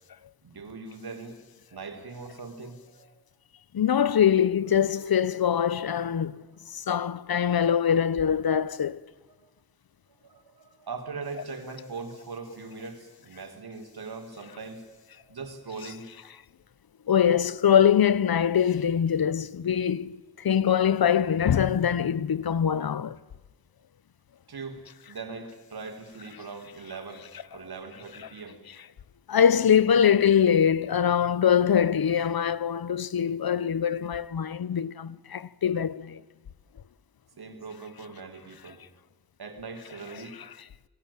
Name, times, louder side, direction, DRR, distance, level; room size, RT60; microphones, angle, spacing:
voice 1, 0.4-1.4 1.7-3.2 9.4-9.5 10.1-14.8 15.2-16.1 24.5-27.2 27.5-28.6 37.4-38.8 39.4-40.4, right 4 dB, 80° right, 4.6 m, -41 dB
voice 2, 3.7-6.4 6.7-9.0 17.1-23.2 29.3-36.2, left 8 dB, 75° left, 1.0 m, -23 dB
29.0 x 21.5 x 9.1 m
wide cardioid pair, 95°, 37 cm